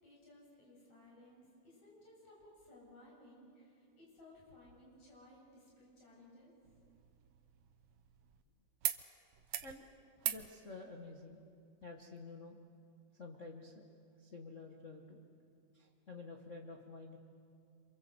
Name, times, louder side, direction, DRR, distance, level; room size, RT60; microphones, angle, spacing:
voice 1, 0.0-6.5, left 1 dB, 65° left, -4 dB, 9.2 m, -60 dB
sound 1, 6.6-8.4 8.8-9.0 9.3-9.7 10.2-10.5 11.8-11.9, right 11 dB, 65° right, 1.6 m, -41 dB
voice 2, 10.2-11.4 11.8-12.6 13.1-13.9 14.2-15.2 15.7-17.2, left 3 dB, 40° left, 0 dB, 1.1 m, -50 dB
28.0 x 26.0 x 8.0 m, 2.5 s
omnidirectional pair, 3.6 m